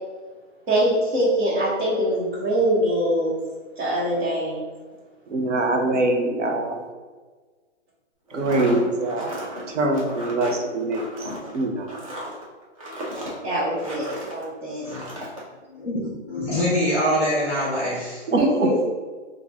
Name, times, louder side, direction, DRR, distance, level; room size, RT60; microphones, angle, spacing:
voice 1, 0.7-3.3 3.8-4.6 13.4-14.9 18.4-18.8, right 1 dB, 55° right, -8 dB, 1.4 m, -23 dB
voice 2, 5.3-6.8 8.3-9.4 9.7-11.3 11.5-11.9 18.3-18.7, right 2 dB, 85° right, 3 dB, 0.9 m, -23 dB
sound 1, 8.3-14.4 14.8-15.4, equal, 30° right, 0.6 m, -35 dB
voice 3, 15.7-18.4, equal, 10° left, -6 dB, 0.5 m, -25 dB
3.5 x 2.5 x 3.4 m, 1.4 s
hypercardioid pair, 170°, 36 cm